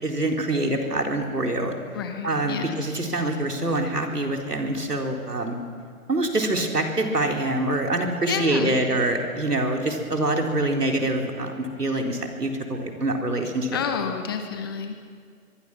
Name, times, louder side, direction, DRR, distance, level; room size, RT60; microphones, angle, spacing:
voice 1, 0.0-1.7 2.2-5.6 6.1-13.8, right 1 dB, 90° right, 2 dB, 4.1 m, -25 dB
voice 2, 1.9-2.8 8.3-8.8 13.7-14.9, left 7 dB, 15° left, 6 dB, 0.8 m, -29 dB
24.5 x 22.5 x 6.2 m, 2.1 s
figure-of-eight pair, 145°, 46 cm